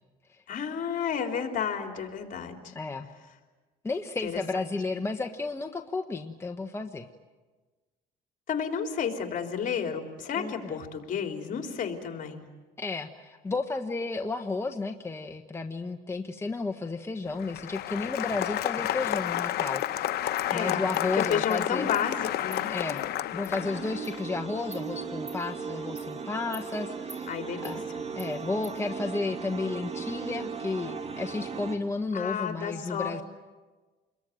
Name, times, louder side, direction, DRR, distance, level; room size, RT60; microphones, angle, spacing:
voice 1, 0.5-2.7 4.2-4.4 8.5-12.5 20.5-22.7 27.3-28.0 32.1-33.2, left 7 dB, 50° left, 3 dB, 3.8 m, -32 dB
voice 2, 2.7-3.1 3.8-7.1 10.4-10.8 12.8-20.3 20.5-21.9 22.7-23.0 23.3-27.4 27.6-27.8 28.2-33.2, left 3 dB, 15° left, 4 dB, 1.3 m, -33 dB
Applause, 17.3-24.2, left 13 dB, 70° left, 0.9 m, -31 dB
Insect, 19.3-19.4 19.8-19.9 20.4-20.5 20.9-21.0 21.5-21.6 21.9-22.1 22.5-22.6 23.0-23.1 23.4-23.5 24.0-24.2 24.7-24.8 25.3-25.4 26.0-26.1 26.5-26.7 27.1-27.2 27.6-27.8 28.2-28.3 28.6-28.7, right 2 dB, 25° right, 5.3 m, -47 dB
sound 1, 23.5-31.8, right 5 dB, 40° right, 2.9 m, -37 dB
28.0 x 22.0 x 9.3 m, 1.3 s
cardioid pair, 110°, 17 cm